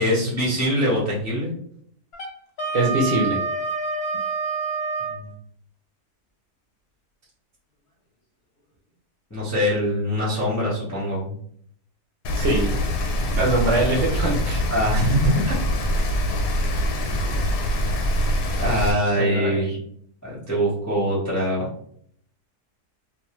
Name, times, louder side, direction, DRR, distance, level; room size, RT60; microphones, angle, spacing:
voice 1, 0.0-1.5 5.1-5.3 9.3-11.4 14.7-15.2 15.5-15.6 17.2-17.7 18.6-19.7 20.2-21.6, equal, 20° left, -7 dB, 0.4 m, -23 dB
Wind instrument woodwind instrument, 2.1-5.2, right 4 dB, 55° left, 0.7 m, -27 dB
voice 2, 2.7-3.4 12.4-12.7 13.3-14.6 19.2-19.6, right 2 dB, 65° right, -2 dB, 0.8 m, -23 dB
Rain, 12.2-18.9, equal, 85° left, 1.1 m, -24 dB
2.6 x 2.2 x 2.9 m, 0.65 s
omnidirectional pair, 1.7 m